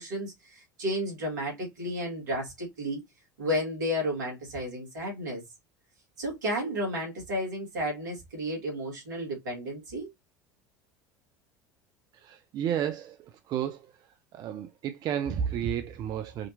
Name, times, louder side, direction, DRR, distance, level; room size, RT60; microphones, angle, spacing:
voice 1, 0.0-3.0 3.4-5.4 6.2-10.1, equal, 75° right, 2.2 m, -32 dB
voice 2, 12.2-13.2 13.5-13.8 14.3-16.5, right 9 dB, 40° right, 0.5 m, -31 dB
5.0 x 2.8 x 2.8 m
figure-of-eight pair, 70°, 10 cm